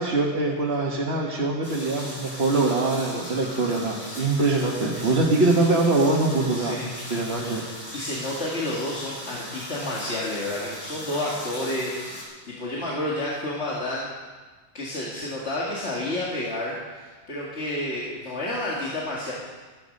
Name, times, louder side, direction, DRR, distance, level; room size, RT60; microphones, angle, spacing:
voice 1, 0.0-6.8 7.1-7.6, right 2 dB, 70° right, -3 dB, 1.7 m, -23 dB
sound 1, 1.6-12.2, equal, 20° left, 4.1 m, -38 dB
voice 2, 6.5-6.9 7.3-7.5 7.9-14.1 14.7-19.3, left 1 dB, 90° left, -5 dB, 2.3 m, -30 dB
14.0 x 14.0 x 5.3 m, 1.3 s
omnidirectional pair, 1.1 m